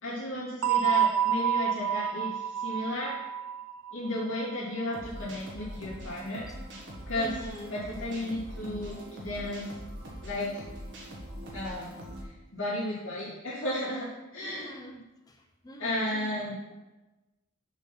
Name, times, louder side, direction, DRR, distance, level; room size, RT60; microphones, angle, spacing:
voice 1, 0.0-3.2 3.9-6.5 7.1-7.4 7.7-9.7 10.2-10.6 11.5-12.0 12.5-14.7 15.8-16.6, left 1 dB, 60° left, -8 dB, 2.9 m, -33 dB
sound 1, 0.6-5.3, right 9 dB, 75° right, 0.4 m, -29 dB
sound 2, 4.9-12.2, equal, 55° right, 1.5 m, -43 dB
voice 2, 7.1-8.2 14.4-15.0 15.6-16.7, equal, 20° left, 3 dB, 0.6 m, -44 dB
7.0 x 4.3 x 5.8 m, 1.1 s
head